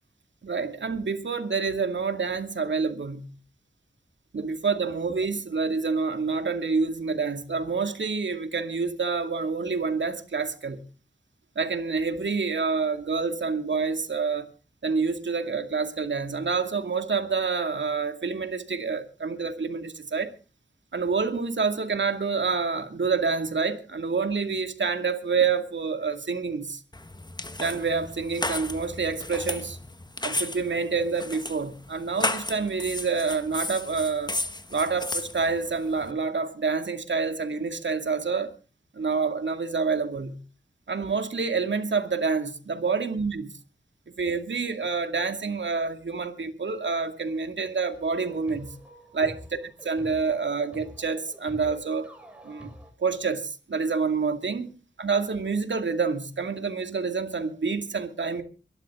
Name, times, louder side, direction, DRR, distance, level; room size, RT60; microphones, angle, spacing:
voice 1, 0.4-3.3 4.3-10.8 11.6-14.5 14.8-20.3 20.9-26.8 27.6-29.8 30.2-34.4 34.7-38.5 38.9-40.4 40.9-43.4 44.2-48.7 49.1-49.4 49.9-52.1 52.4-52.7 53.0-58.4, right 4 dB, 75° right, 2.2 m, -27 dB
sound 1, 26.9-36.1, left 2 dB, 20° left, 1.3 m, -34 dB
sound 2, 47.9-52.9, equal, 5° right, 6.1 m, -46 dB
23.5 x 12.0 x 3.7 m
wide cardioid pair, 55°, 19 cm